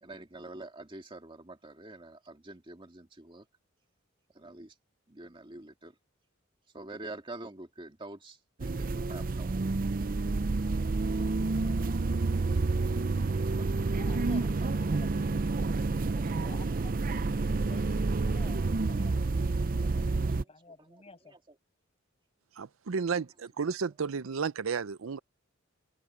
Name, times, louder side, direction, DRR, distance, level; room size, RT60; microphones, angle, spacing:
voice 1, 0.0-3.5 4.3-4.7 5.1-5.9 6.7-9.5 13.4-13.7 14.4-14.7 16.2-16.5 20.2-21.6, right 2 dB, 25° right, 2.2 m, -47 dB
sound 1, 8.6-20.4, right 3 dB, 45° right, 0.5 m, -29 dB
voice 2, 14.0-15.8 16.1-21.4, left 3 dB, 30° left, 7.2 m, -53 dB
voice 3, 22.6-25.2, right 5 dB, 90° right, 0.6 m, -32 dB
open air
head